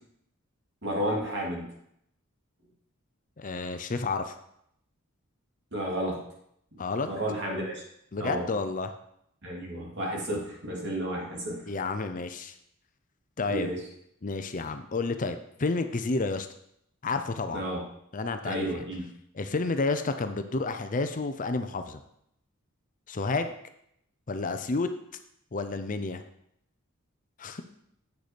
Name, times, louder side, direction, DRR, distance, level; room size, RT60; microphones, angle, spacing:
voice 1, 0.8-1.7 5.7-6.2 7.0-7.8 8.2-8.5 9.4-11.7 13.5-13.8 17.5-17.8 18.4-19.1, equal, 55° right, -2 dB, 2.8 m, -32 dB
voice 2, 3.4-4.4 6.8-7.1 8.1-8.9 11.7-12.6 13.4-13.7 14.2-16.5 17.0-17.7 18.1-18.7 19.3-22.0 23.1-23.5 24.3-24.9 25.5-26.2 27.4-27.6, left 3 dB, 40° left, 8 dB, 0.6 m, -30 dB
8.3 x 6.4 x 5.2 m, 0.74 s
head